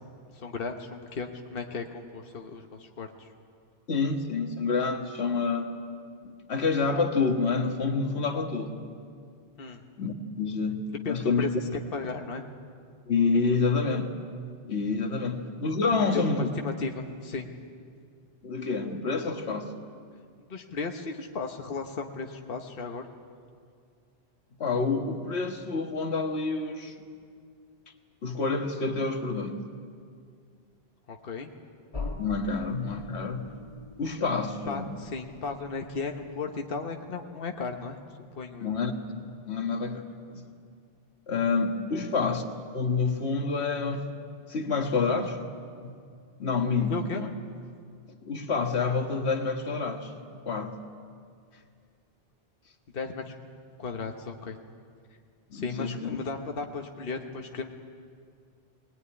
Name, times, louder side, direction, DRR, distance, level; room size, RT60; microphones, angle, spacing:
voice 1, 0.3-3.3 9.6-9.8 11.0-12.4 15.9-17.5 20.4-23.1 31.1-31.5 34.6-38.0 38.4-38.7 46.9-47.2 52.9-53.4 53.8-54.6 55.5-57.7, left 4 dB, 60° left, 3 dB, 1.3 m, -35 dB
voice 2, 3.9-5.7 6.2-8.9 10.0-11.5 13.1-14.1 14.7-16.5 18.4-19.7 24.6-26.9 28.2-29.6 32.2-33.5 34.0-34.8 38.6-38.9 39.2-40.4 41.3-42.4 42.7-44.0 44.5-45.4 45.8-46.0 46.4-47.3 48.2-50.1 50.5-50.8 55.5-56.1, left 4 dB, 85° left, 5 dB, 1.8 m, -28 dB
sound 1, 31.9-36.6, left 3 dB, 35° left, 1.5 m, -42 dB
21.5 x 18.0 x 9.8 m, 2.3 s
omnidirectional pair, 1.1 m